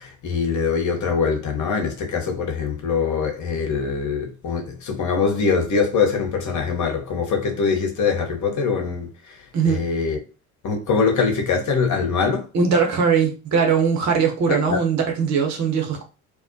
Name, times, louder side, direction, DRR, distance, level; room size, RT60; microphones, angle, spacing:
voice 1, 0.0-10.2 10.6-12.5 14.5-14.8, left 5 dB, 40° left, 0.9 m, -23 dB
voice 2, 12.5-16.0, right 6 dB, 40° right, 0.9 m, -20 dB
2.3 x 2.0 x 2.6 m
hypercardioid pair, 60°, 44 cm